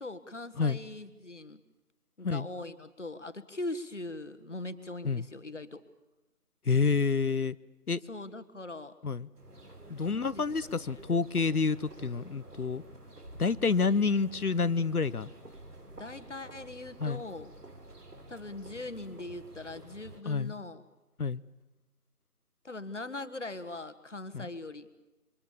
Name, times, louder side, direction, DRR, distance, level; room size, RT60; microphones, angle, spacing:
voice 1, 0.0-1.6 2.2-5.8 8.1-9.0 10.0-10.9 15.9-17.5 18.3-20.8 22.6-24.9, left 2 dB, 50° left, 12 dB, 1.6 m, -41 dB
voice 2, 6.7-7.6 7.9-8.0 9.0-9.3 9.9-12.8 13.4-15.3 17.0-17.2 20.3-20.5 21.2-21.4 24.3-24.5, left 4 dB, 75° left, 17 dB, 0.9 m, -28 dB
sound 1, 9.4-20.2, right 1 dB, 85° right, 4.1 m, -50 dB
28.0 x 25.0 x 7.2 m, 1.0 s
figure-of-eight pair, 175°, 46 cm